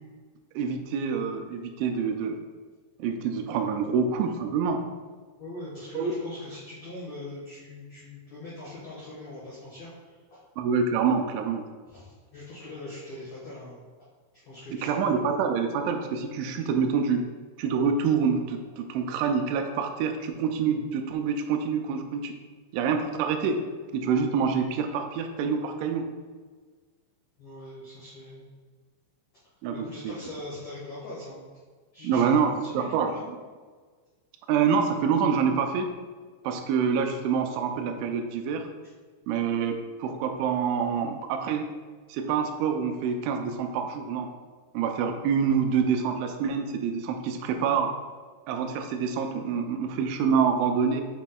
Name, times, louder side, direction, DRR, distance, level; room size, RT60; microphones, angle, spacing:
voice 1, 0.6-2.4 3.0-4.8 5.9-6.1 10.6-11.6 14.8-17.2 17.6-22.3 22.7-23.6 23.9-26.1 29.6-30.1 32.0-33.1 34.5-35.9 36.4-38.7 39.3-41.7 42.1-44.3 44.7-47.9 48.5-51.0, right 6 dB, 85° right, 5 dB, 2.9 m, -26 dB
voice 2, 5.4-10.4 11.9-13.8 14.4-15.0 27.4-28.6 29.7-31.4 31.9-32.3 32.6-33.2, left 1 dB, 80° left, -8 dB, 1.5 m, -42 dB
7.2 x 6.0 x 2.3 m, 1.5 s
omnidirectional pair, 5.4 m